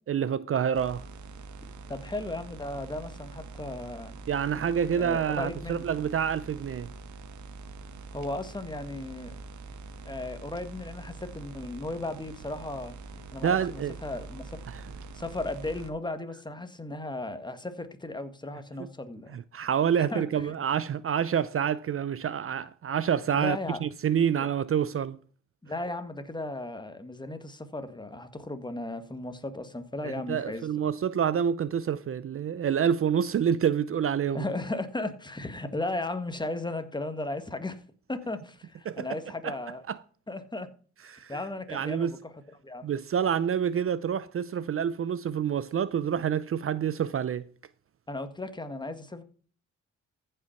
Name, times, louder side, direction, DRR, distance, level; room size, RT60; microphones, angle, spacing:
voice 1, 0.1-1.0 4.3-6.9 13.4-13.9 14.7-14.8 19.3-25.2 30.0-34.5 38.9-39.1 39.4-39.6 39.9-40.0 41.1-41.4 41.7-42.1 42.8-47.5, right 8 dB, 50° right, 0.6 m, -27 dB
sound 1, 0.7-15.9, right 3 dB, 75° right, 1.4 m, -44 dB
voice 2, 1.9-4.2 4.9-5.9 8.1-9.3 10.0-14.5 15.1-19.4 20.0-20.5 23.3-23.8 24.4-24.5 25.6-30.7 34.3-37.8 38.1-39.8 40.3-40.7 41.3-42.3 42.6-42.9 48.1-49.2, left 2 dB, 15° left, 1.7 m, -36 dB
14.5 x 5.6 x 5.8 m
cardioid pair, 95°, 29 cm